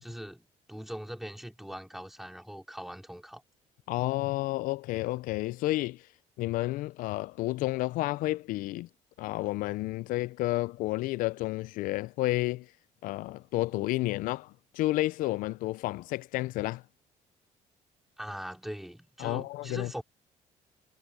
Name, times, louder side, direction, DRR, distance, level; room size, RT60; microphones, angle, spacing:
voice 1, 0.0-3.4 18.2-20.0, equal, ahead, 3.4 m, -41 dB
voice 2, 3.9-6.1 6.4-8.9 9.2-12.7 13.0-16.8 19.2-19.9, left 18 dB, 85° left, 0.4 m, -31 dB
cardioid pair, 120°, 14 cm